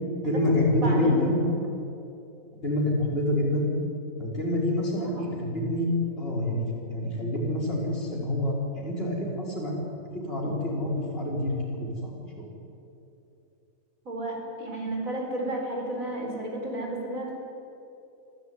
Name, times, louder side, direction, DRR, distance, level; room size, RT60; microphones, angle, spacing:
voice 1, 0.2-1.4 2.6-3.7 4.2-5.9 6.2-12.1 12.4-12.5, left 1 dB, 40° left, -4 dB, 5.7 m, -27 dB
voice 2, 0.8-1.2 5.0-5.1 14.1-17.3, right 1 dB, 65° right, 0 dB, 5.3 m, -32 dB
24.0 x 15.5 x 9.8 m, 2.8 s
omnidirectional pair, 1.5 m